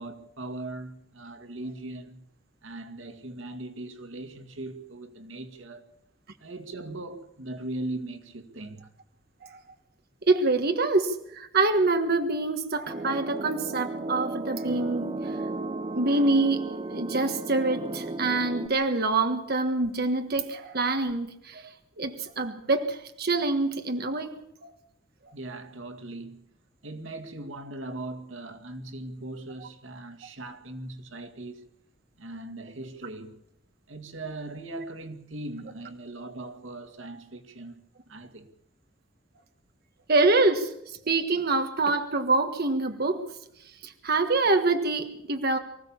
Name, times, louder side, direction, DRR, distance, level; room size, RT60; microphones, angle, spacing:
voice 1, 0.0-2.2 2.6-6.0 6.4-8.9 25.3-26.4 26.8-31.6 32.2-33.4 33.9-37.8 38.1-38.5, right 2 dB, 90° right, 2.2 m, -39 dB
voice 2, 10.3-15.4 15.9-24.7 40.1-43.2 43.6-45.6, right 3 dB, 55° right, 1.5 m, -26 dB
sound 1, 12.9-18.7, right 2 dB, 30° right, 0.9 m, -34 dB
24.5 x 15.5 x 7.3 m
head